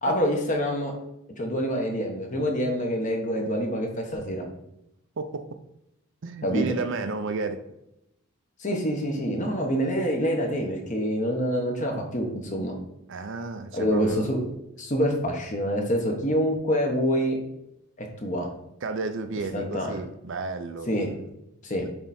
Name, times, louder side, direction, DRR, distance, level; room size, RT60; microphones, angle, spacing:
voice 1, 0.0-0.9 1.4-4.4 6.4-6.7 8.6-12.8 13.7-14.5 14.8-17.4 18.0-18.5 19.5-19.9 20.9-21.1 21.6-21.8, equal, 35° left, 1.1 m, -26 dB
voice 2, 5.2-5.6 6.2-7.6 13.1-14.3 18.8-20.9, right 3 dB, 55° right, 0.5 m, -32 dB
6.9 x 3.4 x 4.2 m
head